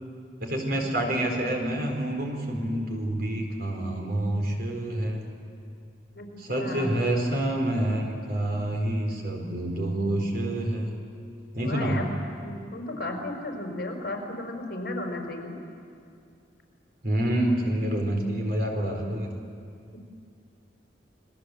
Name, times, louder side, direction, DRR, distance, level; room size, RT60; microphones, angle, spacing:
voice 1, 0.4-5.2 6.4-10.9 11.5-12.0 17.0-19.3, right 1 dB, 55° right, 1 dB, 4.5 m, -27 dB
voice 2, 6.6-6.9 11.6-12.1 12.4-15.5 19.9-20.0, left 2 dB, 55° left, 2 dB, 4.7 m, -34 dB
29.0 x 21.5 x 8.0 m, 2.4 s
head